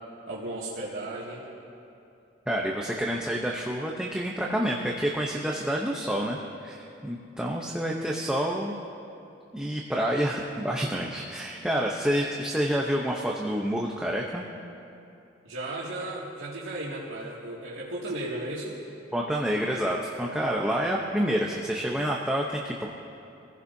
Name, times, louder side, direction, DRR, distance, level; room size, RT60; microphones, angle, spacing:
voice 1, 0.3-1.4 15.4-18.8, right 1 dB, 85° right, -8 dB, 2.2 m, -35 dB
voice 2, 2.5-8.8 9.5-14.5 19.1-22.9, equal, 5° right, -2 dB, 0.8 m, -28 dB
25.5 x 16.0 x 2.8 m, 2.7 s
head